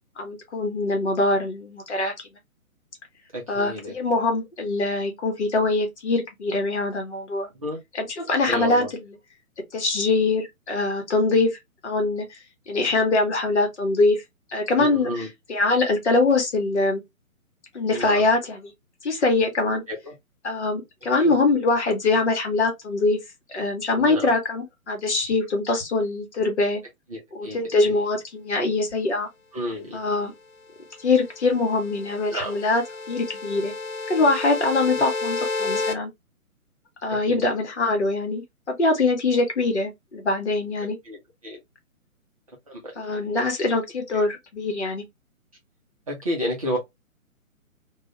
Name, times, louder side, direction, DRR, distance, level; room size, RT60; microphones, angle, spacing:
voice 1, 0.2-2.3 3.5-7.5 7.9-8.8 9.7-12.4 12.7-14.2 14.5-17.0 17.7-18.7 19.0-19.8 20.4-23.2 23.5-26.8 27.3-29.3 29.9-30.3 31.0-32.8 33.1-33.7 34.1-36.1 37.0-41.0 43.0-45.0, left 3 dB, 50° left, 1.1 m, -23 dB
voice 2, 3.3-3.9 7.6-7.8 8.5-8.9 14.8-15.3 17.9-18.3 19.9-20.1 21.2-21.3 23.9-24.3 27.1-28.0 29.5-30.0 32.3-32.6 37.3-37.4 41.0-41.2 41.4-41.6 42.7-43.3 43.7-43.8 44.1-44.2 46.1-46.8, equal, 25° right, 0.6 m, -31 dB
sound 1, 31.0-35.9, left 3 dB, 75° left, 0.9 m, -31 dB
2.4 x 2.3 x 2.9 m
figure-of-eight pair, 135°, 42 cm